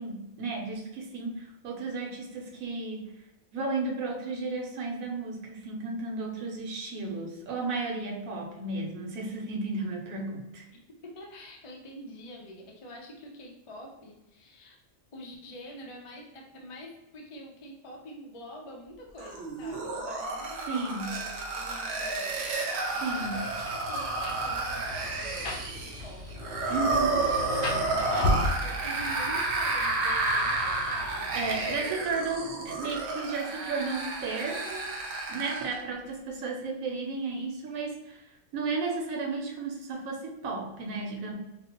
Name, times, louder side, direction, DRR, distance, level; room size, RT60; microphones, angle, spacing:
voice 1, 0.0-3.1 3.5-10.7 20.7-21.2 23.0-23.4 26.7-27.3 31.3-34.8 35.3-38.2 38.5-41.4, right 3 dB, 90° right, 1 dB, 1.1 m, -33 dB
voice 2, 11.0-14.8 15.1-28.0 28.4-31.9, equal, 40° left, -1 dB, 0.4 m, -47 dB
sound 1, 19.2-35.8, right 3 dB, 60° right, 0.8 m, -31 dB
Rain, 23.0-32.1, left 1 dB, 60° left, 0.8 m, -35 dB
4.0 x 2.0 x 2.8 m, 0.92 s
omnidirectional pair, 1.4 m